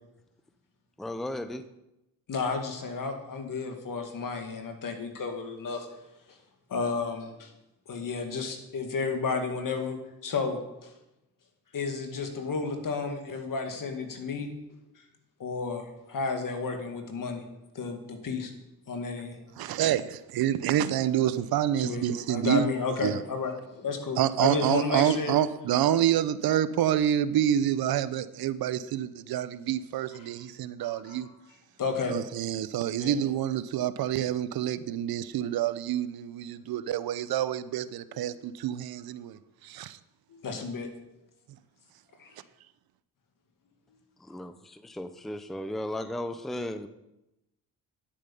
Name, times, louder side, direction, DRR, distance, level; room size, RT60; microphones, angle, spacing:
voice 1, 1.0-1.7 44.2-46.9, left 1 dB, ahead, 0.7 m, -35 dB
voice 2, 2.3-5.9 6.7-7.5 7.9-10.0 10.2-10.9 11.7-14.5 15.4-17.4 17.7-18.5 18.9-19.4 21.8-22.0 22.3-25.4 30.2-30.3 30.8-31.2 31.8-32.1 33.0-33.2 38.1-38.3 40.3-40.9 42.2-42.4, left 4 dB, 55° left, 2.1 m, -32 dB
voice 3, 19.6-22.7 23.0-23.2 24.2-31.3 32.1-40.0, right 11 dB, 70° right, 0.7 m, -27 dB
10.0 x 8.7 x 5.4 m
cardioid pair, 65°, 38 cm